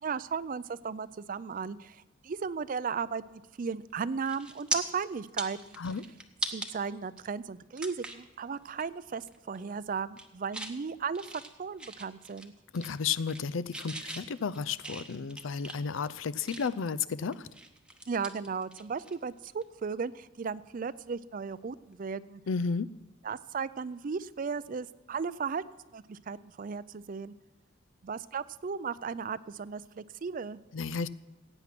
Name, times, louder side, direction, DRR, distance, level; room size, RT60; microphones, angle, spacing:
voice 1, 0.0-5.8 6.5-12.5 18.1-22.4 23.2-25.6 25.9-27.3 28.0-30.6, right 5 dB, 45° right, 18 dB, 0.4 m, -36 dB
sound 1, 3.7-3.9 4.3-4.8 5.2-6.7 7.2-7.3 7.8-8.3 8.7-8.9 9.2-9.6 10.0-10.8 11.1-12.5 12.7-13.5 13.7-16.9 17.3-19.1 19.4-19.6 21.5-21.7, right 1 dB, 5° right, 0.8 m, -39 dB
voice 2, 12.7-17.5 22.5-22.9 30.7-31.1, left 5 dB, 90° left, 16 dB, 0.5 m, -32 dB
16.0 x 9.0 x 6.0 m, 1.1 s
head